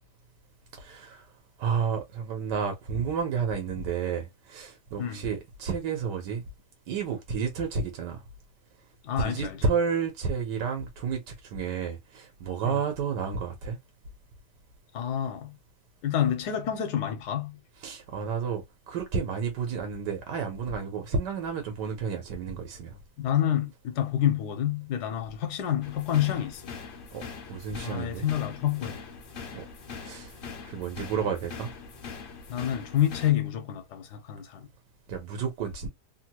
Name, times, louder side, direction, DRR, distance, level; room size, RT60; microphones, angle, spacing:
voice 1, 0.8-1.3 1.6-6.4 6.9-8.2 9.2-13.8 17.8-23.0 27.1-27.2 27.5-28.3 29.5-29.6 30.0-30.3 30.6-31.7 35.1-35.9, right 5 dB, 85° right, 1.5 m, -31 dB
voice 2, 9.0-9.7 12.6-12.8 14.9-15.6 16.0-17.6 23.2-26.7 27.8-29.0 32.5-34.7, left 10 dB, 75° left, 1.3 m, -28 dB
sound 1, 25.8-33.3, left 5 dB, 55° left, 0.6 m, -42 dB
3.4 x 2.2 x 2.8 m
omnidirectional pair, 1.8 m